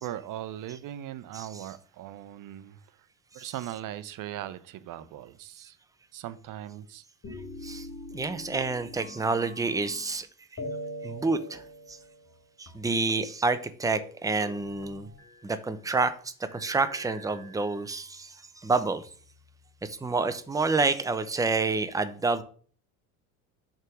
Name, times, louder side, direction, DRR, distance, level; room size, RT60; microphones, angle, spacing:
voice 1, 0.0-2.8 3.3-5.8 6.1-7.0, right 12 dB, 50° right, 0.7 m, -39 dB
sound 1, 7.2-10.2 10.6-12.4 12.7-12.8 13.1-13.3 13.5-13.7 14.0-15.7 16.4-18.0 18.7-19.6, left 1 dB, 35° left, 2.3 m, -43 dB
voice 2, 7.6-10.3 11.0-12.0 12.6-15.1 15.4-16.1 16.5-19.0 19.8-22.4, right 3 dB, 10° right, 0.7 m, -28 dB
6.4 x 3.7 x 6.1 m
supercardioid pair, 85°, 41 cm